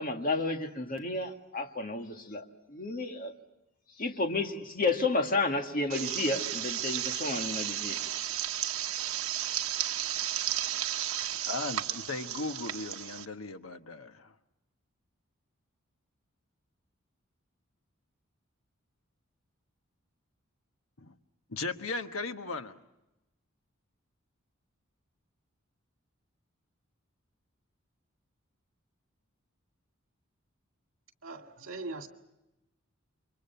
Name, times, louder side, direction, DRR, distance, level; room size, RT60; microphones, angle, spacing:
voice 1, 0.0-3.3 4.0-8.0, left 3 dB, 40° left, 2.0 m, -31 dB
sound 1, 5.9-13.2, right 11 dB, 85° right, 1.0 m, -33 dB
voice 2, 11.5-14.3 21.0-21.1 21.5-22.8, left 3 dB, 85° left, 1.2 m, -37 dB
voice 3, 31.2-32.1, right 3 dB, 70° right, 2.2 m, -40 dB
29.5 x 24.5 x 5.8 m
head